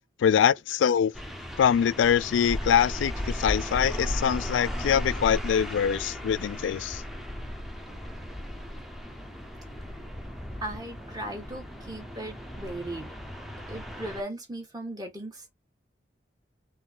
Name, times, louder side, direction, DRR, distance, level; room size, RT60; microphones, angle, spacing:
voice 1, 0.2-1.1 1.6-7.0, left 8 dB, 90° left, 0.3 m, -24 dB
sound 1, 1.1-14.2, equal, ahead, 0.8 m, -36 dB
voice 2, 10.6-13.1 13.7-15.5, right 1 dB, 20° right, 1.5 m, -37 dB
4.4 x 3.2 x 3.7 m
head